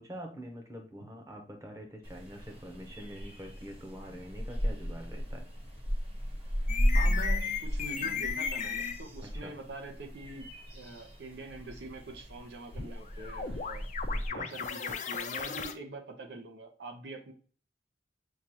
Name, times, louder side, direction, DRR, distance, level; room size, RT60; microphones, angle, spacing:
voice 1, 0.0-5.5 9.2-9.5 14.1-14.5, equal, 20° right, 3 dB, 0.9 m, -45 dB
sound 1, 2.0-14.3, equal, 35° right, 1.3 m, -35 dB
sound 2, 6.7-9.0 12.7-15.7, left 6 dB, 45° left, 0.4 m, -35 dB
voice 2, 6.9-13.8 14.3-17.3, right 2 dB, 80° right, 5 dB, 0.8 m, -44 dB
6.4 x 2.4 x 2.8 m, 0.42 s
head